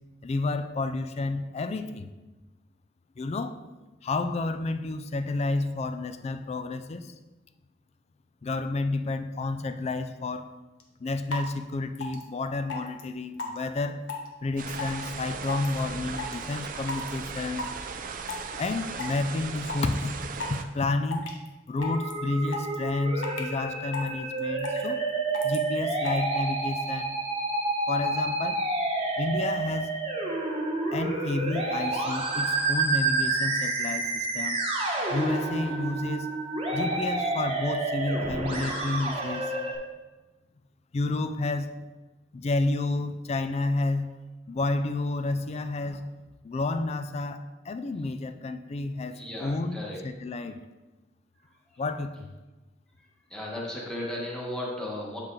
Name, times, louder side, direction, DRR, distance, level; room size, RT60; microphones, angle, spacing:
voice 1, 0.2-2.1 3.2-3.6 4.0-7.1 8.4-10.5 11.0-14.0 14.4-17.7 18.6-21.3 21.7-25.0 25.4-27.2 27.9-28.6 29.2-29.9 30.9-34.6 35.1-36.3 36.7-39.5 40.9-41.8 42.3-44.1 44.5-46.1 46.4-50.6 51.8-52.3, left 2 dB, 35° left, 10 dB, 0.4 m, -30 dB
sound 1, 10.8-10.9 11.3-11.4 11.9-12.2 12.7-13.0 13.4-13.7 14.1-14.3 14.8-15.0 15.4-15.8 16.2-16.4 16.9-17.1 17.6-17.8 18.3-18.7 19.0-19.2 19.6-19.9 20.4-20.6 21.1-21.5 21.8-22.1 22.5-22.7 23.2-23.5 23.9-24.1 24.4-24.9 25.3-25.6 26.0-26.2, left 4 dB, 85° left, 1.0 m, -34 dB
sound 2, 14.6-20.6, right 5 dB, 45° right, 0.4 m, -37 dB
Musical instrument, 21.8-39.8, right 2 dB, 30° right, 1.1 m, -29 dB
voice 2, 49.1-50.0 53.3-55.2, left 1 dB, 5° left, -4 dB, 1.4 m, -35 dB
7.4 x 4.5 x 3.8 m, 1.1 s
head